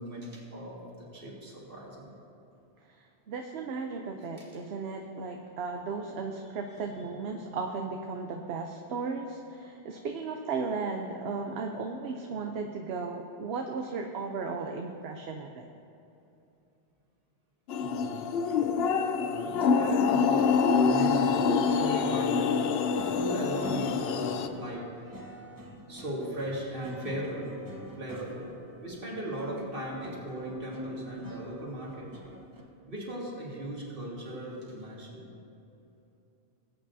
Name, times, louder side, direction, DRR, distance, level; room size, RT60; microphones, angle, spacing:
voice 1, 0.0-2.2 4.2-4.6 17.8-18.2 19.1-22.6 23.1-24.9 25.9-27.6 28.0-32.1 32.9-35.3, right 1 dB, 50° right, -4 dB, 2.2 m, -38 dB
voice 2, 2.9-15.7, right 4 dB, 65° right, 3 dB, 0.9 m, -35 dB
sound 1, 17.7-24.5, left 5 dB, 65° left, 0.7 m, -26 dB
sound 2, 22.9-32.6, right 1 dB, 20° right, 0.9 m, -46 dB
19.0 x 8.5 x 2.7 m, 2.8 s
omnidirectional pair, 1.2 m